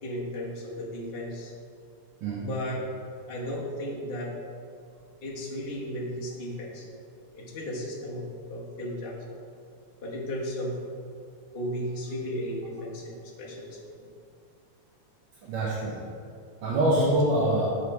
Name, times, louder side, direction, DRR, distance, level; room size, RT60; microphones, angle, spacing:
voice 1, 0.0-1.5 2.3-2.9 3.3-4.3 5.2-6.9 7.3-9.4 10.0-10.8 11.5-14.1, equal, 35° left, -3 dB, 1.2 m, -35 dB
voice 2, 2.2-2.5 15.4-16.0 16.6-17.8, right 1 dB, 80° right, -6 dB, 1.7 m, -25 dB
6.7 x 5.2 x 4.7 m, 2.4 s
omnidirectional pair, 2.1 m